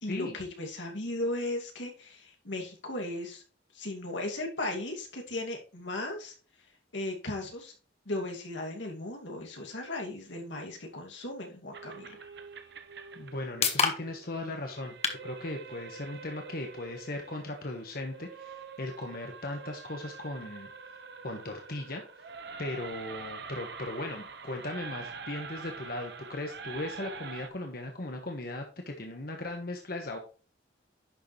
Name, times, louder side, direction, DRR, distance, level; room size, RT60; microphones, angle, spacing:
voice 1, 0.0-3.4 3.7-6.3 6.9-7.7 8.1-12.2, left 2 dB, 85° left, 1 dB, 2.5 m, -36 dB
sound 1, 11.7-27.5, right 5 dB, 65° right, 0.9 m, -45 dB
sound 2, 12.9-26.8, left 5 dB, 35° left, 1.4 m, -40 dB
voice 2, 13.1-15.0 15.2-20.7 21.2-22.0 22.6-30.2, left 2 dB, 55° left, 3 dB, 1.4 m, -38 dB
11.0 x 6.8 x 3.2 m, 0.36 s
head